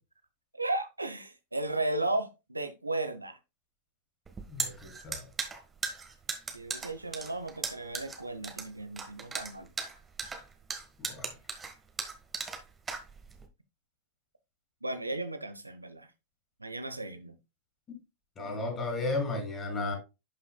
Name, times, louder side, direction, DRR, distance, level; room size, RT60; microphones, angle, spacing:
voice 1, 0.5-3.4 6.5-9.7 14.8-16.1 16.6-17.3, right 2 dB, 85° right, 0.8 m, -35 dB
sound 1, 4.3-13.5, right 4 dB, 15° right, 1.4 m, -37 dB
voice 2, 4.5-5.3 11.0-11.3 17.9-18.0 18.4-19.9, left 2 dB, 25° left, 3.9 m, -34 dB
11.0 x 5.8 x 2.3 m
figure-of-eight pair, 90°, 0 cm